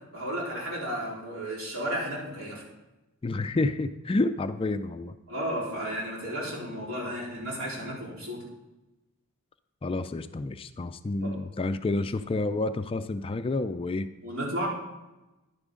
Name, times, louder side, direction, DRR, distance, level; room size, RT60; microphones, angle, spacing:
voice 1, 0.1-2.6 5.3-8.4 11.2-11.4 11.9-12.0 14.2-14.7, equal, 65° right, -5 dB, 4.1 m, -33 dB
voice 2, 3.2-5.2 9.8-14.1, left 2 dB, 25° left, 10 dB, 0.4 m, -29 dB
11.0 x 9.8 x 3.8 m, 1.0 s
head